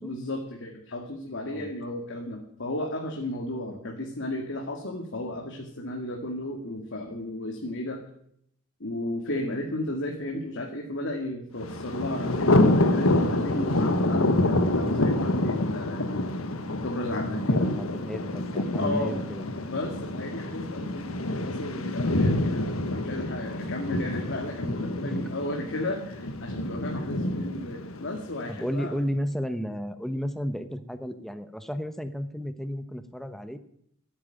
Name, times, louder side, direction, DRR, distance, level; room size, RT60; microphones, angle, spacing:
voice 1, 0.0-8.0 8.8-16.3 16.8-17.5 18.8-19.2 19.6-21.1 21.4-28.9, left 1 dB, 60° left, 1 dB, 2.2 m, -34 dB
Thunder, 11.6-28.6, left 1 dB, 85° left, 1.4 m, -27 dB
voice 2, 17.3-19.5 25.0-25.3 28.5-33.6, equal, ahead, 10 dB, 1.1 m, -33 dB
14.0 x 9.0 x 9.2 m, 0.69 s
head